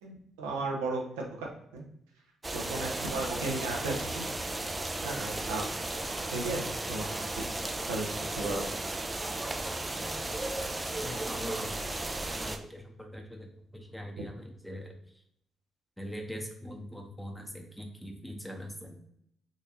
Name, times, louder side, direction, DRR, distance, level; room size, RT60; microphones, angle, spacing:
voice 1, 0.0-1.5 1.7-1.8 2.5-4.2 5.0-5.7 6.3-7.1 7.3-7.4 7.9-8.6, right 3 dB, 85° right, -1 dB, 0.7 m, -35 dB
sound 1, 2.4-12.6, right 2 dB, 25° right, 0.4 m, -35 dB
voice 2, 11.0-11.9 12.4-13.5 13.7-14.9 16.0-19.0, equal, 5° left, 2 dB, 0.8 m, -42 dB
3.8 x 2.8 x 2.7 m, 0.72 s
hypercardioid pair, 45°, 0 cm